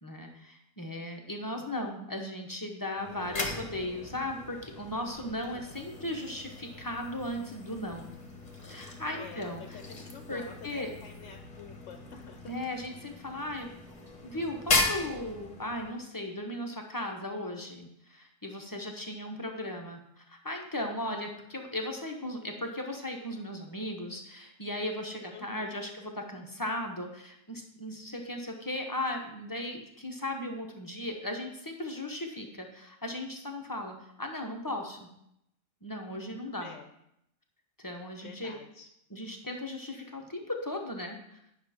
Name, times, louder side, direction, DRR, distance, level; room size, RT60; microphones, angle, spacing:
voice 1, 0.0-8.1 8.7-9.8 10.3-10.9 12.5-13.7 14.2-35.1 35.8-36.7 37.8-38.5 39.1-41.2, left 1 dB, 20° left, 2 dB, 0.9 m, -37 dB
sound 1, 3.0-16.0, left 2 dB, 35° left, 1.3 m, -37 dB
voice 2, 9.1-12.6 25.3-25.8 36.6-36.9 38.2-38.9, left 6 dB, 70° left, 6 dB, 1.0 m, -48 dB
9.5 x 6.1 x 4.3 m, 0.78 s
omnidirectional pair, 1.3 m